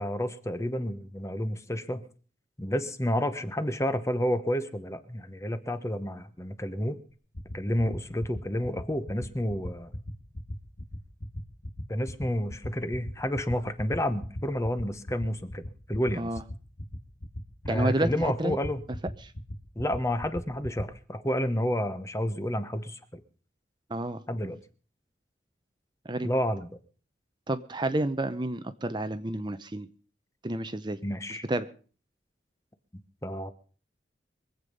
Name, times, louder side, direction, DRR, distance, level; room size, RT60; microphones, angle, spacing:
voice 1, 0.0-2.0 2.6-7.0 7.5-9.9 11.9-16.3 17.6-18.8 19.8-23.2 24.3-24.6 26.2-26.7 31.0-31.4 33.2-33.5, equal, 15° left, 11 dB, 1.0 m, -30 dB
sound 1, 7.1-20.8, left 1 dB, 85° left, 2.1 m, -37 dB
voice 2, 17.7-18.6 19.2-19.3 23.9-24.2 26.0-26.3 27.5-29.9 30.4-31.0 31.3-31.7, right 2 dB, 25° right, 11 dB, 0.7 m, -30 dB
24.0 x 8.2 x 5.3 m, 0.40 s
head